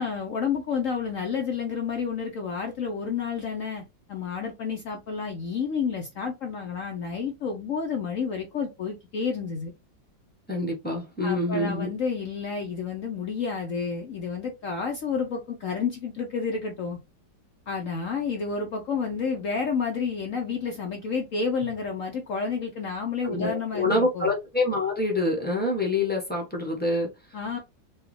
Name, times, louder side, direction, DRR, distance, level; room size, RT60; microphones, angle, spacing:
voice 1, 0.0-9.7 11.2-17.0 17.7-24.3 27.3-27.6, left 5 dB, 60° left, 0.9 m, -30 dB
voice 2, 10.5-11.9 23.2-27.1, left 2 dB, 10° left, 0.5 m, -26 dB
4.4 x 2.3 x 3.2 m
omnidirectional pair, 1.9 m